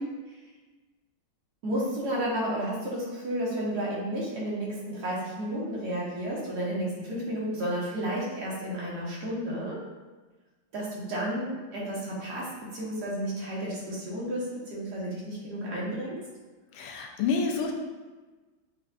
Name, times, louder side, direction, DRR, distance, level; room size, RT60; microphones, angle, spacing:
voice 1, 1.6-9.8 10.7-12.5 12.7-16.2, right 1 dB, 55° right, -6 dB, 1.5 m, -32 dB
voice 2, 16.7-17.7, left 5 dB, 80° left, 2 dB, 1.4 m, -28 dB
6.6 x 2.4 x 2.4 m, 1.2 s
omnidirectional pair, 2.3 m